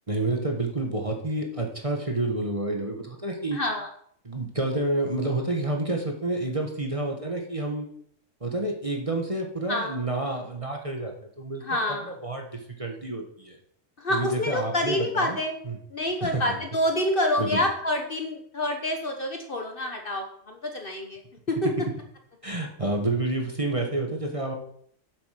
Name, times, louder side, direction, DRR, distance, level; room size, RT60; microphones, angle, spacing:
voice 1, 0.1-3.6 4.2-7.9 8.4-11.6 12.2-13.6 14.1-15.4 15.7-15.8 16.2-16.6 17.4-17.6 22.4-24.6, right 2 dB, 25° right, 2 dB, 1.5 m, -29 dB
voice 2, 3.5-3.9 9.7-10.0 11.6-12.1 14.0-15.6 15.9-21.2 21.5-21.7, left 1 dB, 50° left, 3 dB, 1.3 m, -27 dB
8.5 x 7.9 x 5.9 m, 0.64 s
omnidirectional pair, 1.3 m